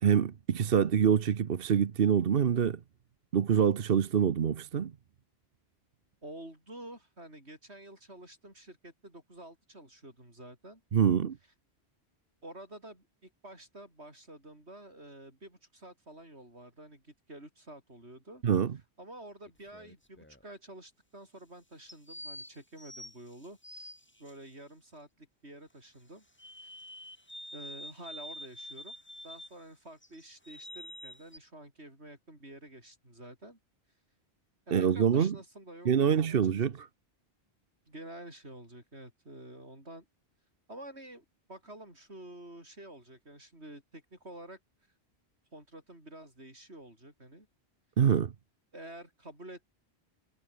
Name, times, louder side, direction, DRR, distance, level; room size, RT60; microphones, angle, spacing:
voice 1, 0.0-2.8 3.3-4.9 10.9-11.4 18.4-18.8 34.7-35.4 35.8-36.9 48.0-48.3, right 7 dB, 60° right, 1.1 m, -25 dB
voice 2, 6.2-10.8 12.4-18.4 19.0-23.9 24.2-26.2 26.6-26.7 27.5-28.9 29.2-33.6 34.7-36.4 36.7-36.8 37.9-40.1 40.7-44.6 45.5-47.5 48.7-49.7, right 1 dB, 85° right, 8.4 m, -49 dB
sound 1, 19.5-20.4 21.9-24.3 26.4-29.6 30.0-31.4, left 1 dB, 10° left, 1.9 m, -47 dB
omnidirectional pair, 1.1 m